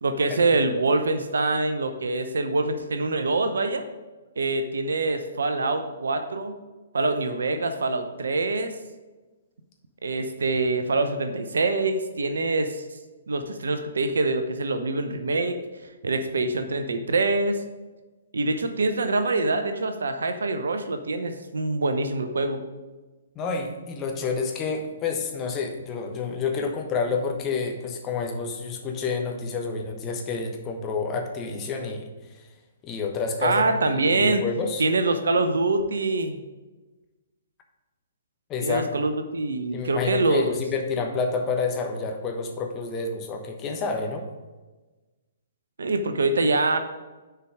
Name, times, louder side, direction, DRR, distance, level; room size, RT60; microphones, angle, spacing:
voice 1, 0.0-3.8 4.4-6.5 6.9-8.7 10.0-12.8 13.3-15.6 16.0-17.6 18.3-22.6 33.4-34.4 34.8-36.4 38.6-40.5 45.8-46.8, right 3 dB, 70° right, 8 dB, 0.7 m, -25 dB
voice 2, 23.3-32.1 32.3-32.4 32.8-33.6 33.9-34.8 38.5-38.8 39.7-44.2, left 4 dB, 25° left, 3 dB, 1.1 m, -29 dB
6.7 x 4.7 x 6.4 m, 1.2 s
figure-of-eight pair, 125°, 0 cm